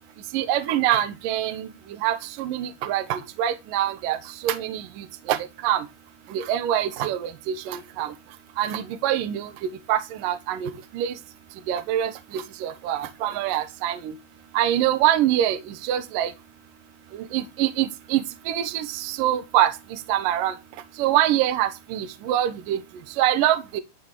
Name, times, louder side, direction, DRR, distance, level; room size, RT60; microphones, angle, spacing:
voice 1, 0.3-5.9 6.3-8.2 8.6-11.2 11.5-14.2 14.5-16.3 17.1-22.8 23.1-23.8, right 12 dB, 65° right, 2.3 m, -25 dB
13.0 x 5.8 x 6.9 m
omnidirectional pair, 5.0 m